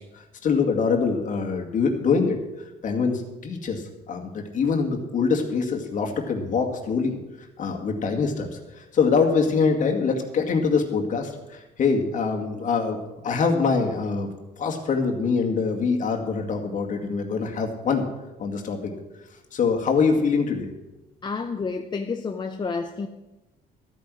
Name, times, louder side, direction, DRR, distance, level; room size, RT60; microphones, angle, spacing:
voice 1, 0.1-2.4 2.8-7.2 7.6-8.5 8.8-13.0 13.2-14.3 14.6-18.0 18.4-18.9 19.5-20.7, left 5 dB, 50° left, 2.1 m, -24 dB
voice 2, 21.2-23.1, left 4 dB, 25° left, 0.7 m, -29 dB
13.0 x 9.3 x 6.3 m
cardioid pair, 110°, 17 cm